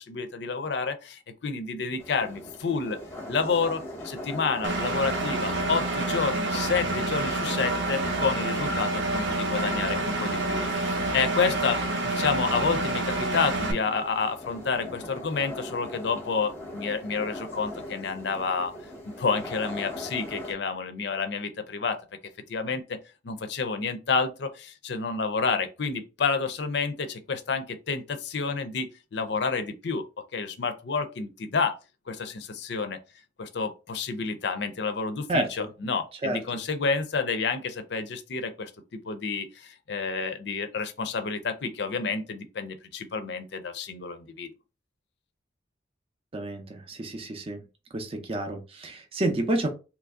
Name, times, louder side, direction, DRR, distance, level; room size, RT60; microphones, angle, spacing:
voice 1, 0.0-3.0 3.3-18.8 19.0-22.0 22.5-23.0 23.2-30.0 30.3-31.8 32.1-33.0 33.4-44.5, left 5 dB, 60° left, 0.5 m, -29 dB
sound 1, 2.0-20.5, left 1 dB, 10° left, 0.7 m, -41 dB
Engine, 4.6-13.7, right 2 dB, 70° right, 0.7 m, -28 dB
voice 2, 35.3-35.7 36.2-36.4 46.3-47.6 47.9-49.7, right 1 dB, 30° right, 0.5 m, -29 dB
3.0 x 2.5 x 3.5 m
head